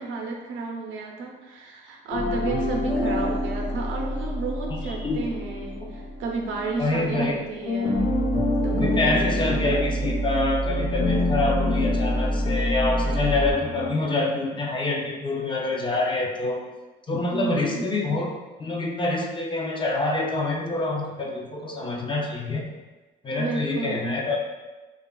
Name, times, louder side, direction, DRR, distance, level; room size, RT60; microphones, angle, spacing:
voice 1, 0.0-8.1 8.6-9.3 17.3-17.9 23.3-24.2, right 3 dB, 80° right, 1 dB, 0.5 m, -32 dB
sound 1, 2.1-7.3 7.6-13.9, left 1 dB, 65° left, 1.0 m, -26 dB
voice 2, 4.7-5.2 6.8-7.4 8.8-16.7 17.1-18.3 18.6-22.7 23.2-24.4, left 2 dB, 25° left, 0 dB, 0.4 m, -26 dB
3.0 x 2.3 x 2.2 m, 1.2 s
cardioid pair, 90°, 20 cm